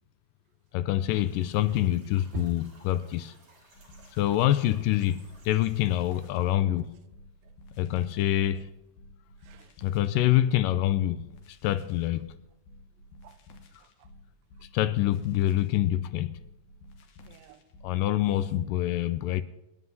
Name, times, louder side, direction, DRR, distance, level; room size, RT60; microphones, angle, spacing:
voice 1, 0.7-3.3 4.1-6.9 7.8-8.7 9.8-12.3 14.7-16.4 17.8-19.4, left 13 dB, 80° left, 2.0 m, -26 dB
sound 1, 1.1-6.3, right 2 dB, 65° right, 5.6 m, -59 dB
sound 2, 3.7-18.4, left 1 dB, 65° left, 2.3 m, -52 dB
voice 2, 9.4-9.8 13.2-13.4 13.7-14.1 17.3-17.6, right 7 dB, 80° right, 2.4 m, -44 dB
26.5 x 9.6 x 2.7 m
omnidirectional pair, 4.2 m